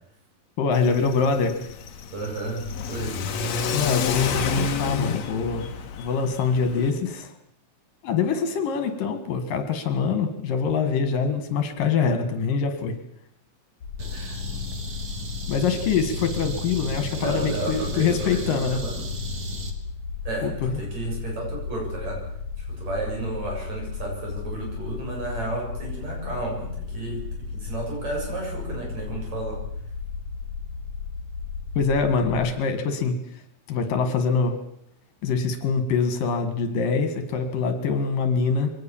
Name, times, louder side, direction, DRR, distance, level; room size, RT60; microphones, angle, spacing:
voice 1, 0.6-1.6 3.7-5.7 6.0-7.3 8.0-13.0 15.5-18.8 20.4-20.8 31.8-33.2 33.7-34.6 35.2-38.7, left 5 dB, 75° left, 8 dB, 3.6 m, -24 dB
Car / Accelerating revving vroom, 0.7-6.9, left 5 dB, 55° left, 2.4 m, -29 dB
voice 2, 2.1-3.2 14.0-14.4 17.1-19.0 20.3-22.2 22.7-29.6, right 2 dB, 50° right, -1 dB, 8.6 m, -32 dB
sound 1, 13.8-32.5, left 5 dB, 40° left, 9.1 m, -34 dB
sound 2, 14.0-19.7, equal, 35° right, 2.0 m, -35 dB
23.5 x 18.0 x 7.3 m, 0.74 s
omnidirectional pair, 4.1 m